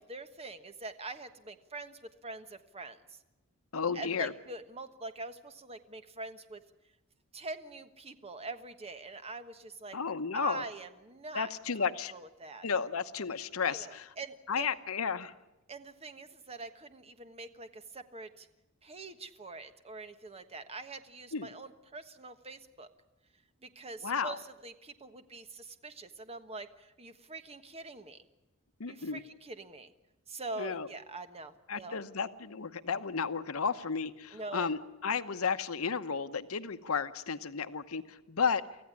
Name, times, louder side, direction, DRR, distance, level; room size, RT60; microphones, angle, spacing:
voice 1, 0.0-3.2 3.9-6.6 7.3-10.0 10.3-11.5 11.8-12.7 13.6-14.7 15.7-18.5 18.8-22.9 23.6-28.2 28.9-29.9 30.3-32.0 34.3-34.7, right 3 dB, 30° right, 9 dB, 1.3 m, -44 dB
voice 2, 3.7-4.3 9.9-10.6 11.3-12.1 12.6-14.1 14.5-15.3 21.3-21.5 24.0-24.4 28.8-29.2 30.6-30.9 31.7-38.6, left 5 dB, 80° left, 11 dB, 0.9 m, -33 dB
24.5 x 15.0 x 9.9 m, 1.0 s
head